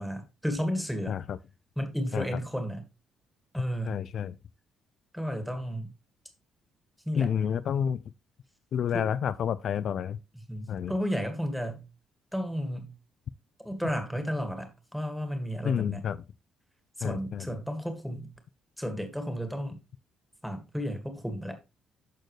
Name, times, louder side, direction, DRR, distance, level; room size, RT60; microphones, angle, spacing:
voice 1, 0.0-1.2 1.8-2.8 3.5-4.0 5.1-5.9 7.1-7.3 8.9-9.1 10.5-11.9 12.3-12.9 13.6-16.0 17.0-18.3 18.8-19.8 20.4-21.6, equal, ahead, 2.0 m, -33 dB
voice 2, 3.9-4.3 7.2-8.0 8.7-10.2 10.7-10.9 15.6-16.2 17.0-17.5, left 8 dB, 60° left, 0.3 m, -29 dB
13.0 x 4.3 x 3.2 m
cardioid pair, 90°, 0 cm